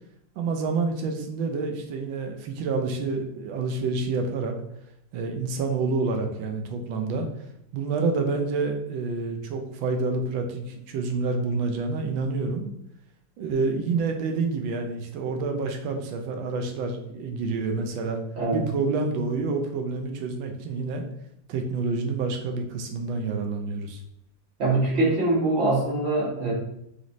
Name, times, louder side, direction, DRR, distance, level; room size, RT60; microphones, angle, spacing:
voice 1, 0.4-4.5 5.1-7.3 7.7-12.7 13.4-18.2 18.5-21.0 21.5-24.0, right 4 dB, 80° right, 4 dB, 1.3 m, -28 dB
voice 2, 24.6-26.5, right 2 dB, 40° right, -6 dB, 1.3 m, -23 dB
4.0 x 3.1 x 2.6 m, 0.77 s
omnidirectional pair, 2.1 m